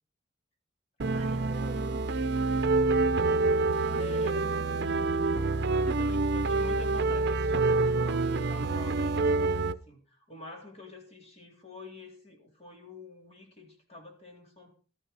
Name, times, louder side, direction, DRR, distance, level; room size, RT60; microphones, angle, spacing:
sound 1, 1.0-9.8, right 3 dB, 60° right, 0.7 m, -27 dB
voice 1, 1.1-2.6 3.8-5.1 5.7-6.1, right 2 dB, 35° right, 6 dB, 2.0 m, -46 dB
voice 2, 4.0-4.6 5.9-14.7, left 2 dB, 35° left, 1 dB, 3.7 m, -47 dB
14.0 x 13.5 x 4.1 m, 0.38 s
head